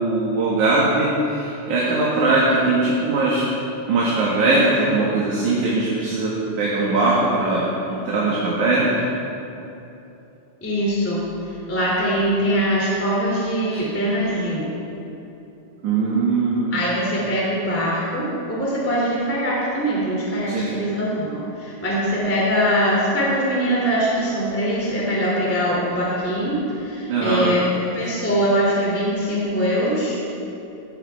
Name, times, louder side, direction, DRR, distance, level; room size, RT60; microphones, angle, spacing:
voice 1, 0.0-3.4 3.9-9.0 13.7-13.8 15.8-16.8 20.5-20.7 27.1-27.5, right 2 dB, 65° right, -6 dB, 3.1 m, -20 dB
voice 2, 10.6-14.7 16.7-30.2, equal, 5° left, -6 dB, 2.2 m, -22 dB
18.0 x 13.5 x 3.5 m, 2.9 s
omnidirectional pair, 3.8 m